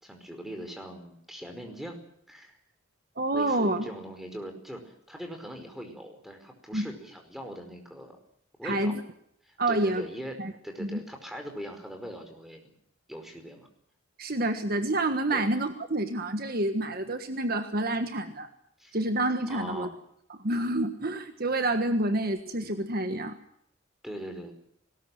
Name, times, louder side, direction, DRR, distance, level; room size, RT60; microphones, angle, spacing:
voice 1, 0.0-2.0 2.3-2.6 3.3-8.2 8.6-8.9 9.4-12.6 13.1-13.7 15.3-15.5 18.8-19.0 19.5-20.0 24.0-24.5, equal, ahead, 4 dB, 5.0 m, -41 dB
voice 2, 3.2-3.9 6.7-6.9 8.6-9.0 9.6-10.1 10.4-10.5 10.8-11.0 14.2-18.5 18.9-19.9 20.3-23.4, right 1 dB, 45° right, 8 dB, 1.5 m, -28 dB
21.0 x 20.0 x 7.9 m, 0.72 s
head